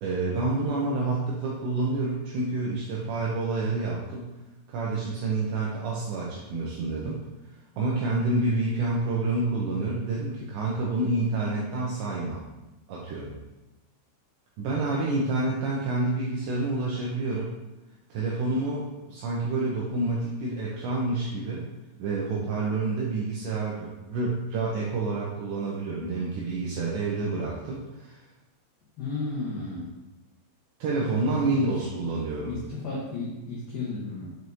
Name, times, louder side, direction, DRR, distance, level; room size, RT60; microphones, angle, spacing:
voice 1, 0.0-4.3 4.7-7.2 7.8-12.4 12.9-13.3 14.6-17.5 18.1-21.7 22.0-28.2 30.8-32.5, right 3 dB, 85° right, -4 dB, 2.5 m, -28 dB
voice 2, 29.0-29.9 31.2-31.8 32.5-34.3, left 3 dB, 85° left, -7 dB, 2.0 m, -33 dB
7.8 x 4.6 x 2.7 m, 1.0 s
omnidirectional pair, 5.9 m